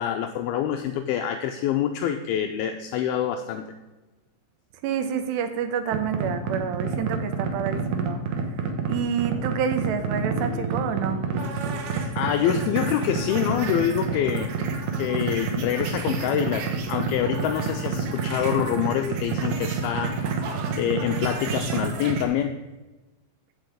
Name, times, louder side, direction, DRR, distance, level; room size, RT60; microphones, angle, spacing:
voice 1, 0.0-3.7 12.1-14.5 15.0-20.2 20.8-22.6, left 10 dB, 85° left, 6 dB, 2.2 m, -26 dB
voice 2, 4.8-8.2 8.9-11.2, right 8 dB, 85° right, 8 dB, 3.1 m, -28 dB
sound 1, 5.9-22.2, right 5 dB, 65° right, 2.3 m, -28 dB
16.0 x 5.4 x 5.2 m, 1.1 s
omnidirectional pair, 4.9 m